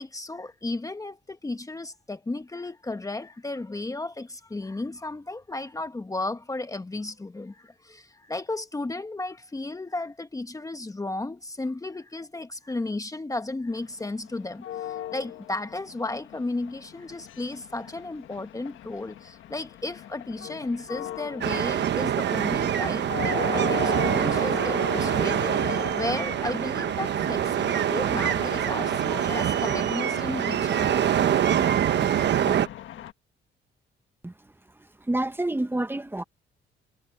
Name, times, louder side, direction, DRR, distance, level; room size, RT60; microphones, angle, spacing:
voice 1, 0.0-30.9, left 2 dB, 15° left, 1.2 m, -34 dB
sound 1, 13.7-33.1, left 11 dB, 75° left, 1.4 m, -38 dB
sound 2, 21.4-32.7, right 10 dB, 60° right, 1.1 m, -25 dB
voice 2, 35.1-36.2, right 1 dB, 10° right, 1.4 m, -27 dB
cardioid pair, 90°, 20 cm